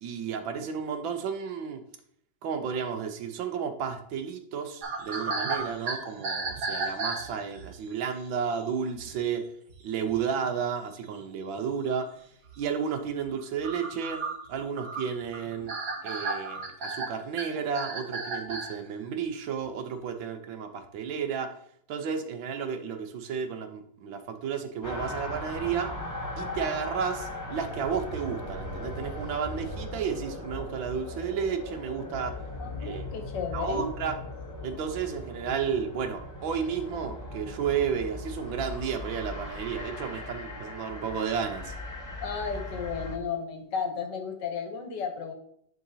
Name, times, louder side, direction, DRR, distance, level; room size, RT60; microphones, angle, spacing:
voice 1, 0.0-1.8 2.4-9.4 9.8-12.1 12.6-14.2 14.5-15.7 16.0-21.5 21.9-25.9 26.4-32.3 32.8-33.1 33.5-34.1 34.6-41.7, right 7 dB, 75° right, 7 dB, 1.5 m, -32 dB
sound 1, 4.8-7.7 8.5-8.6 8.9-9.1 9.7-9.8 10.1-10.6 11.2-11.3 11.6-11.7 12.4-12.6 13.0-18.8, right 3 dB, 55° right, 1.7 m, -34 dB
sound 2, 24.8-43.2, left 1 dB, 15° left, 0.6 m, -38 dB
voice 2, 32.6-33.9 42.2-45.3, left 5 dB, 65° left, 5 dB, 1.5 m, -33 dB
10.5 x 3.9 x 2.7 m, 0.66 s
omnidirectional pair, 2.2 m